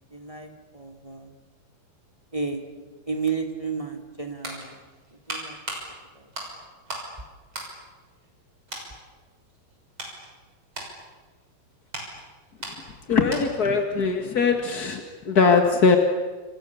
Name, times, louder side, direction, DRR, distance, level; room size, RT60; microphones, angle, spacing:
voice 1, 0.1-1.3 2.3-2.6 3.1-4.8 5.1-5.6 6.1-6.3, right 5 dB, 10° right, 6 dB, 1.7 m, -32 dB
sound 1, 4.1-7.1 7.5-8.4 8.7-8.9 9.5-13.7 14.0-14.2, right 1 dB, 30° right, 7.1 m, -38 dB
voice 2, 13.1-16.0, left 4 dB, 40° left, 4 dB, 1.3 m, -21 dB
29.5 x 27.5 x 7.1 m, 1.3 s
omnidirectional pair, 4.5 m